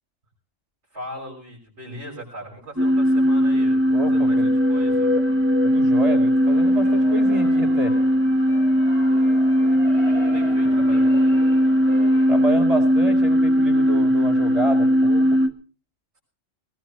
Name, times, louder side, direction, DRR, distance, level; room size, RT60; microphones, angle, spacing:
voice 1, 0.9-5.1 9.6-11.5, equal, 60° right, -3 dB, 6.5 m, -39 dB
sound 1, 2.8-15.5, equal, 10° right, 1.0 m, -18 dB
voice 2, 3.9-4.5 5.6-7.9 12.3-15.4, right 2 dB, 30° right, 4 dB, 4.5 m, -29 dB
sound 2, 6.4-12.5, right 1 dB, 75° left, 8.2 m, -39 dB
20.0 x 20.0 x 3.2 m, 0.39 s
omnidirectional pair, 1.3 m